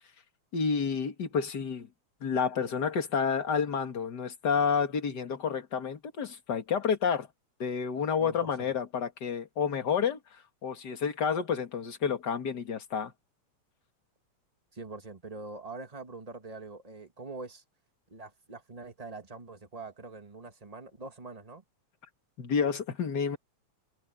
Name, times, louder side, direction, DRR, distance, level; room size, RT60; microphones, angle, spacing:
voice 1, 0.5-1.9 2.2-7.3 7.6-10.2 10.6-13.1 22.4-23.4, left 6 dB, 40° left, 2.3 m, -29 dB
voice 2, 8.2-8.7 14.7-17.6 18.1-21.6, right 3 dB, 15° right, 1.5 m, -44 dB
omnidirectional pair, 3.4 m